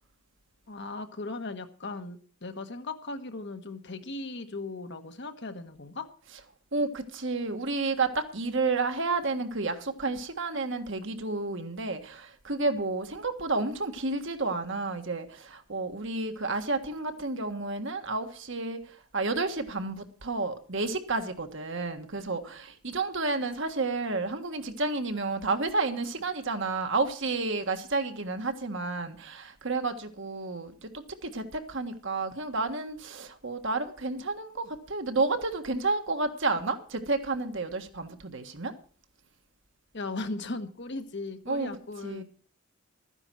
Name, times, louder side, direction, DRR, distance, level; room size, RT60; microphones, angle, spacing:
voice 1, 0.7-6.1 39.9-42.2, left 3 dB, 50° left, 1.3 m, -37 dB
voice 2, 6.7-38.7 41.5-41.7 42.0-42.2, right 3 dB, 55° right, 1.5 m, -31 dB
13.5 x 9.9 x 6.2 m
head